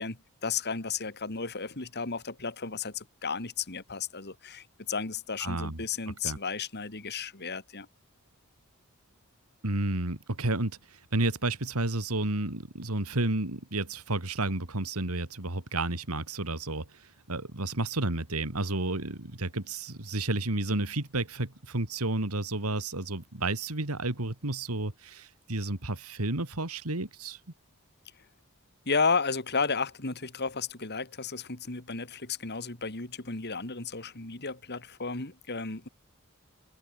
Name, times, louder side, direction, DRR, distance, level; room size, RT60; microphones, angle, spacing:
voice 1, 0.0-7.9 28.9-35.9, left 5 dB, 50° left, 2.9 m, -33 dB
voice 2, 5.4-5.8 6.2-6.4 9.6-17.0 17.3-27.4, right 2 dB, 85° right, 2.8 m, -31 dB
head